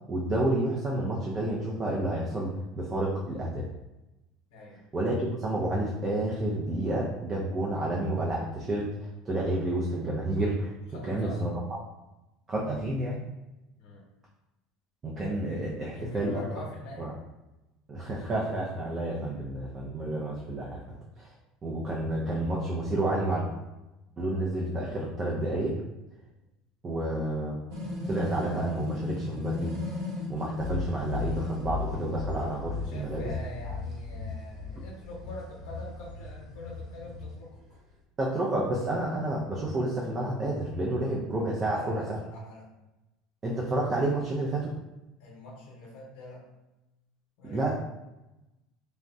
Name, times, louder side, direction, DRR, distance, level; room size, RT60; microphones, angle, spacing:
voice 1, 0.1-3.7 4.9-10.7 11.0-11.8 12.5-13.2 15.0-16.4 17.0-17.1 17.9-21.3 21.6-23.5 24.2-25.8 26.8-27.6 28.1-29.8 30.3-33.2 38.2-42.0 43.4-44.7 47.4-47.8, right 1 dB, 25° right, -3 dB, 0.4 m, -30 dB
voice 2, 4.5-4.8 10.9-11.4 13.8-14.0 15.9-17.1 19.1-19.5 20.0-20.1 20.8-20.9 32.8-37.6 41.6-42.7 45.2-46.4 47.4-47.8, left 2 dB, 80° left, -3 dB, 0.8 m, -44 dB
sound 1, 27.7-31.7, left 2 dB, 75° right, 1.0 m, -35 dB
sound 2, 30.6-38.0, left 3 dB, 50° right, 1.0 m, -37 dB
3.5 x 2.1 x 2.5 m, 0.99 s
supercardioid pair, 135°, 0 cm